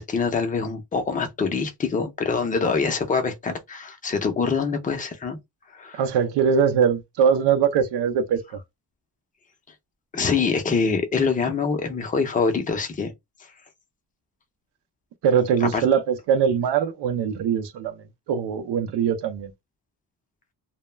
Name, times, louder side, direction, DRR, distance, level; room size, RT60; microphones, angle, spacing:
voice 1, 0.0-5.4 5.7-6.0 10.1-13.1 15.7-15.8, left 5 dB, 20° left, 0.4 m, -24 dB
voice 2, 5.9-8.4 15.2-19.5, right 7 dB, 70° right, 0.5 m, -22 dB
2.1 x 2.0 x 3.1 m
wide cardioid pair, 150°, 42 cm